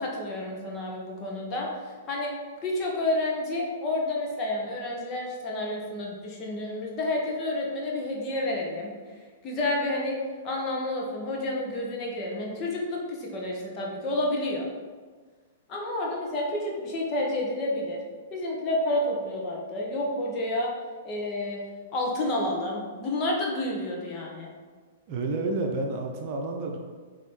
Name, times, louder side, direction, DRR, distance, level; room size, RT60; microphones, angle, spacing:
voice 1, 0.0-2.3 2.6-10.2 10.4-14.7 15.7-18.0 18.3-20.7 21.0-21.6 21.9-24.5, left 1 dB, 30° left, -2 dB, 1.6 m, -30 dB
voice 2, 25.1-26.8, right 3 dB, 40° right, 2 dB, 0.9 m, -30 dB
8.1 x 3.2 x 4.4 m, 1.5 s
figure-of-eight pair, 105°, 0 cm